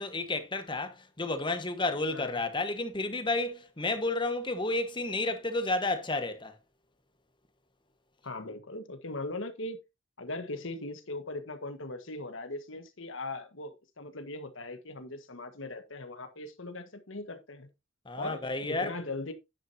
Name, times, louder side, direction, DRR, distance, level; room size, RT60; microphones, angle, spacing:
voice 1, 0.0-6.5 18.1-18.9, left 2 dB, 25° left, 1.3 m, -31 dB
voice 2, 8.2-9.8 10.2-17.7 18.2-19.3, left 2 dB, 85° left, 1.5 m, -39 dB
10.0 x 8.7 x 2.8 m
head